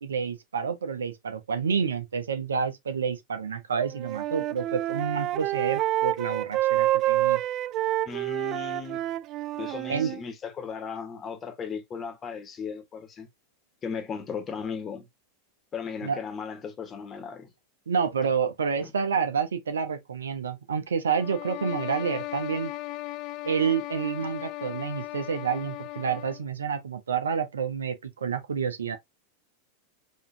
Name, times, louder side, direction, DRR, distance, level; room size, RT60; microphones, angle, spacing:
voice 1, 0.0-7.4 9.9-10.1 16.0-16.2 17.9-22.7 23.4-29.0, right 6 dB, 85° right, 0.9 m, -29 dB
Wind instrument woodwind instrument, 3.7-10.2, right 15 dB, 45° right, 0.3 m, -28 dB
voice 2, 8.0-9.2 9.6-13.3 13.8-15.1 15.7-17.5 18.8-18.9, left 6 dB, 30° left, 1.4 m, -36 dB
sound 1, 21.1-26.5, left 17 dB, 50° left, 0.4 m, -37 dB
5.4 x 3.2 x 2.7 m
hypercardioid pair, 95°, 0 cm